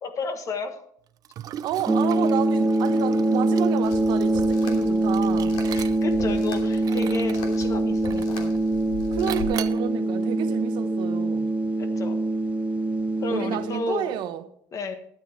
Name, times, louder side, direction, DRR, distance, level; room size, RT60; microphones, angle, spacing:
voice 1, 0.0-0.8 5.7-8.5 11.8-12.2 13.2-14.2 14.7-15.0, left 3 dB, 35° left, 1.4 m, -32 dB
Liquid, 1.2-6.3 6.7-7.5 8.0-8.6 9.3-9.9, right 10 dB, 45° right, 0.6 m, -38 dB
voice 2, 1.6-5.6 9.1-11.5 13.3-14.4, right 11 dB, 60° right, 1.1 m, -31 dB
sound 1, 1.9-13.8, right 2 dB, 15° right, 1.0 m, -24 dB
sound 2, 3.8-9.4, left 2 dB, 70° left, 3.0 m, -39 dB
12.5 x 8.9 x 4.4 m
cardioid pair, 120°, 9 cm